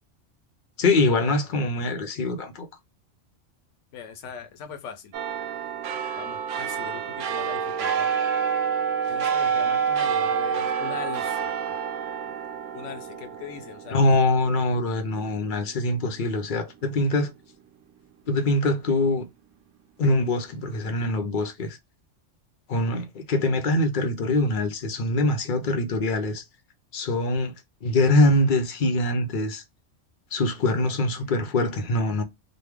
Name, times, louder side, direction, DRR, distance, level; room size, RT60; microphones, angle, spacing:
voice 1, 0.8-2.7 13.9-17.3 18.3-19.3 20.0-21.8 22.7-26.4 26.9-27.5 27.8-29.6 30.3-32.2, left 2 dB, 50° left, 0.7 m, -23 dB
voice 2, 3.9-5.1 6.2-8.1 9.1-11.8 12.7-14.1, left 7 dB, 70° left, 1.0 m, -40 dB
sound 1, 5.1-15.9 16.3-16.4, right 7 dB, 80° right, 0.9 m, -28 dB
3.1 x 2.3 x 3.3 m
omnidirectional pair, 1.3 m